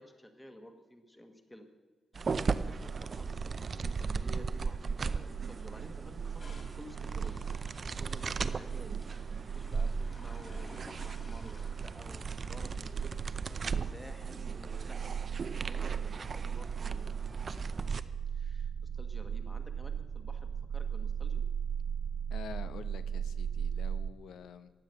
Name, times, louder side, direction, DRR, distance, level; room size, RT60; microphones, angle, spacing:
voice 1, 0.0-1.7 2.1-7.4 7.8-9.0 9.5-17.2 18.3-21.4, left 1 dB, 5° left, 6 dB, 1.2 m, -53 dB
sound 1, 2.1-18.0, right 5 dB, 30° right, 0.5 m, -37 dB
sound 2, 5.2-24.1, right 7 dB, 75° right, 1.4 m, -38 dB
sound 3, 6.4-14.6, left 2 dB, 25° left, 2.7 m, -56 dB
voice 2, 22.3-24.7, left 7 dB, 85° left, 12 dB, 0.8 m, -47 dB
15.5 x 10.5 x 6.8 m, 1.5 s
wide cardioid pair, 180°, 0 cm